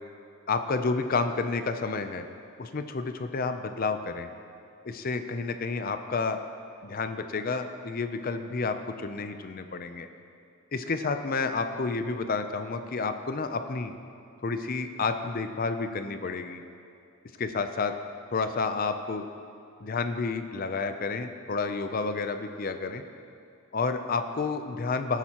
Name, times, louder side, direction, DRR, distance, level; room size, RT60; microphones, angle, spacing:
voice 1, 0.5-2.3 2.6-4.3 4.8-6.4 6.8-10.1 10.7-13.9 14.4-16.6 17.4-17.9 18.3-19.2 19.8-23.0 23.7-25.2, left 4 dB, 40° left, 8 dB, 0.5 m, -30 dB
18.0 x 9.8 x 3.0 m, 2.7 s
head